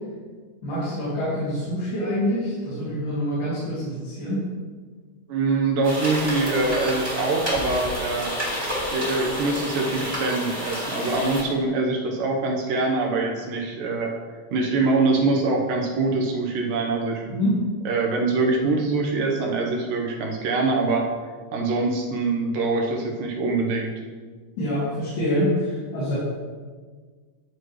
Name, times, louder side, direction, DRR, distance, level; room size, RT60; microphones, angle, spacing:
voice 1, 0.6-4.4 17.4-17.6 24.6-26.1, equal, 80° left, -11 dB, 3.8 m, -26 dB
voice 2, 5.3-8.3 8.9-14.1 14.5-17.3 17.9-21.0 21.5-23.9, right 3 dB, 85° right, 0 dB, 2.7 m, -24 dB
sound 1, 5.8-11.4, equal, 15° right, 1.1 m, -29 dB
12.5 x 4.8 x 3.1 m, 1.5 s
omnidirectional pair, 3.7 m